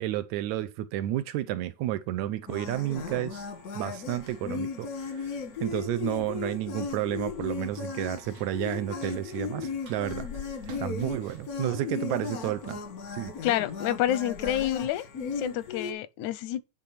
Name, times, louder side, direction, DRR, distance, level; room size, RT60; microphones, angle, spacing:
voice 1, 0.0-3.4 3.8-5.3 5.6-10.3 10.7-12.8 13.1-13.3, right 13 dB, 80° right, 2.0 m, -31 dB
sound 1, 2.5-15.9, left 5 dB, 55° left, 1.0 m, -36 dB
Run, 5.0-12.9, right 5 dB, 60° right, 2.3 m, -52 dB
voice 2, 13.4-15.1 15.4-16.6, left 12 dB, 85° left, 2.1 m, -28 dB
10.5 x 3.7 x 5.7 m
omnidirectional pair, 3.3 m